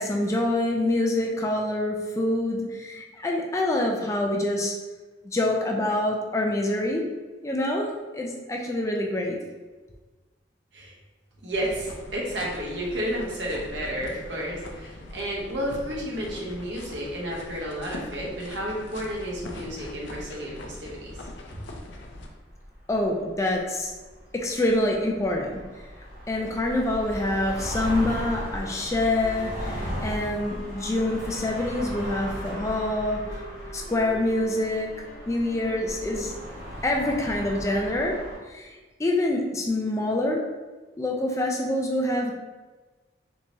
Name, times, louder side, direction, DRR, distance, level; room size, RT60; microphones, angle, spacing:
voice 1, 0.0-4.7 5.2-7.0 7.4-9.4 22.9-23.9 24.3-25.6 26.3-33.2 33.7-34.9 35.3-36.3 36.8-38.2 38.5-40.4 41.0-42.3, left 1 dB, 15° left, 0 dB, 0.3 m, -26 dB
voice 2, 11.4-21.2, equal, 75° right, -3 dB, 0.9 m, -31 dB
sound 1, 11.5-22.3, left 1 dB, 80° left, 0.5 m, -41 dB
sound 2, 22.0-38.4, equal, 50° right, 1.4 m, -37 dB
Wind instrument woodwind instrument, 27.4-36.9, equal, 35° left, 0.7 m, -45 dB
3.4 x 2.7 x 3.0 m, 1.3 s
head